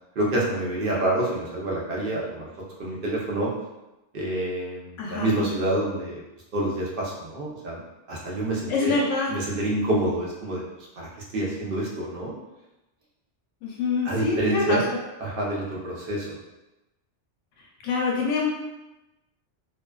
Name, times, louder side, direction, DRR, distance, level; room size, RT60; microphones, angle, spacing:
voice 1, 0.2-2.5 2.8-3.5 4.1-6.2 6.5-7.8 8.1-9.0 9.3-10.6 11.0-12.3 14.0-14.8 15.2-16.4, right 1 dB, 55° right, -4 dB, 0.7 m, -27 dB
voice 2, 5.0-5.4 8.7-9.3 13.6-14.8 17.8-18.5, left 4 dB, 90° left, -2 dB, 0.9 m, -25 dB
2.4 x 2.2 x 2.2 m, 0.99 s
omnidirectional pair, 1.2 m